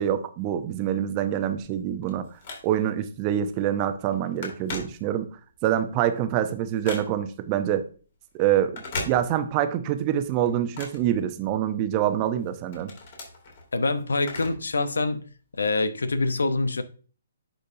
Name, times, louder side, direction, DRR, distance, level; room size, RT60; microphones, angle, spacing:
voice 1, 0.0-2.2 2.6-5.3 5.6-7.8 8.3-12.9, right 10 dB, 30° right, 0.8 m, -25 dB
Telephone, 1.6-3.0 3.5-3.7 4.0-5.5 5.9-7.4 8.6-9.7 10.0-11.8 12.3-14.8 15.1-15.2 16.0-16.1, left 3 dB, 50° left, 2.8 m, -39 dB
voice 2, 13.7-15.2 15.6-16.8, left 3 dB, 80° left, 0.8 m, -25 dB
10.5 x 5.2 x 2.7 m
figure-of-eight pair, 135°, 0 cm